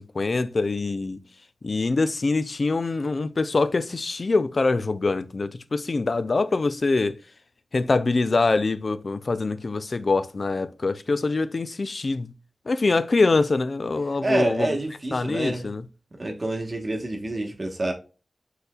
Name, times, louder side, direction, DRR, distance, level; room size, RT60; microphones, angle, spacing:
voice 1, 0.1-1.2 1.6-7.2 7.7-12.3 12.7-14.8 15.1-15.8, left 3 dB, 60° left, 0.4 m, -24 dB
voice 2, 14.2-15.7 16.2-17.9, right 2 dB, 45° right, 1.1 m, -27 dB
5.5 x 4.0 x 2.2 m
cardioid pair, 50°, 0 cm